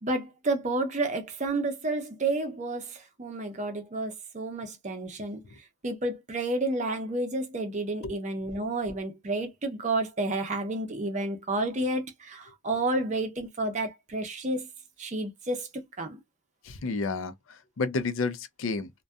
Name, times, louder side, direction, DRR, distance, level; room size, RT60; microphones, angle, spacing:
voice 1, 0.0-5.4 5.8-14.7 15.0-16.2, right 2 dB, 35° right, 0.6 m, -30 dB
voice 2, 16.6-18.9, left 3 dB, 80° left, 0.5 m, -31 dB
2.6 x 2.2 x 2.2 m
head